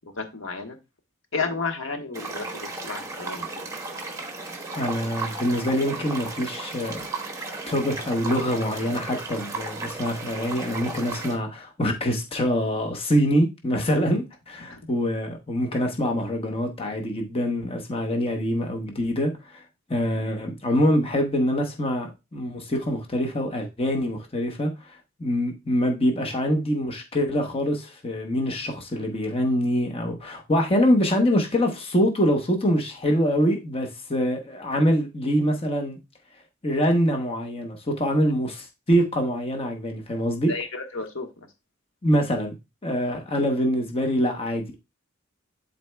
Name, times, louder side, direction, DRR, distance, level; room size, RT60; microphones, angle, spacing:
voice 1, 0.1-0.8 1.3-3.5 14.6-14.8 40.5-41.5 43.1-43.2, left 4 dB, 70° left, 1.3 m, -32 dB
sound 1, 2.1-11.4, right 3 dB, 15° right, 1.1 m, -35 dB
voice 2, 4.7-7.1 7.7-19.6 19.9-36.0 36.6-40.5 42.0-42.5 42.8-44.8, equal, 25° left, 0.9 m, -24 dB
11.0 x 4.1 x 2.3 m
head